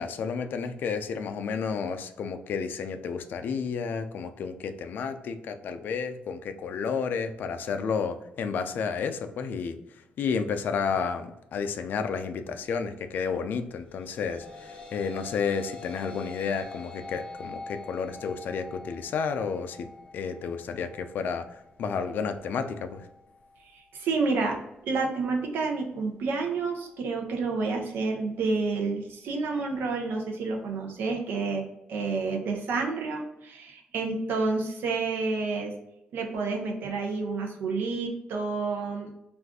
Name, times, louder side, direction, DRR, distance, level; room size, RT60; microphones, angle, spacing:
voice 1, 0.0-19.9 20.1-23.1, left 6 dB, 70° left, 8 dB, 0.3 m, -31 dB
sound 1, 13.9-23.1, left 3 dB, 30° left, 0.6 m, -45 dB
voice 2, 23.7-24.6 24.8-31.6 31.9-35.7 36.1-39.1, right 4 dB, 80° right, 1 dB, 0.7 m, -29 dB
2.5 x 2.4 x 3.5 m, 0.87 s
cardioid pair, 95°, 3 cm